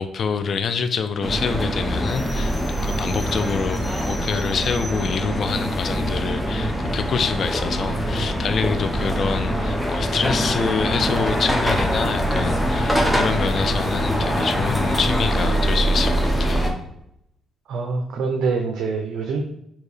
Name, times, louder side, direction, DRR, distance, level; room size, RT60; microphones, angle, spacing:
voice 1, 0.0-2.5 2.8-16.7, left 5 dB, 55° left, 9 dB, 0.4 m, -26 dB
sound 1, 1.2-16.7, equal, 5° left, 0.8 m, -23 dB
voice 2, 17.7-19.4, right 4 dB, 75° right, 2 dB, 0.5 m, -25 dB
4.5 x 2.9 x 3.2 m, 0.78 s
cardioid pair, 90°, 0 cm